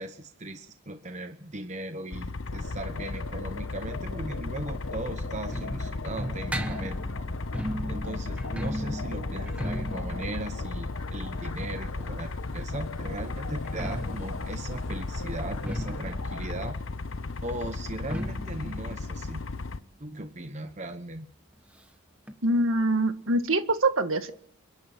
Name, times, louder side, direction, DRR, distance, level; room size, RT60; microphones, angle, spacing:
voice 1, 0.0-7.0 7.9-16.8 17.4-19.4 20.0-21.3, right 1 dB, 30° right, 7 dB, 1.1 m, -38 dB
sound 1, 2.1-19.8, left 3 dB, 65° left, 0.9 m, -36 dB
sound 2, 2.5-16.7, left 2 dB, 85° left, 1.7 m, -40 dB
sound 3, 4.7-12.4 13.5-20.9 21.2-21.3 21.5-21.6 22.3-22.4, equal, 5° right, 1.3 m, -38 dB
voice 2, 22.4-24.3, right 2 dB, 65° right, 8 dB, 1.8 m, -24 dB
28.5 x 11.0 x 9.1 m, 0.68 s
head